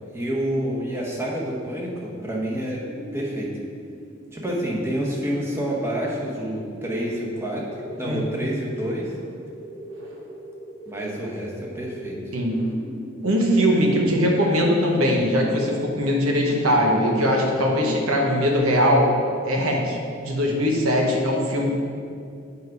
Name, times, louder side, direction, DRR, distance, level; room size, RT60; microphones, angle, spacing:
voice 1, 0.1-2.8 3.1-3.5 4.3-7.6 8.0-9.1 10.9-12.3 13.8-13.9, right 1 dB, 10° right, -3 dB, 1.0 m, -28 dB
sound 1, 2.7-17.6, right 1 dB, 65° right, 1.6 m, -39 dB
voice 2, 13.2-19.1 19.4-21.7, equal, 90° right, 0 dB, 1.2 m, -21 dB
7.3 x 4.9 x 4.8 m, 2.4 s
head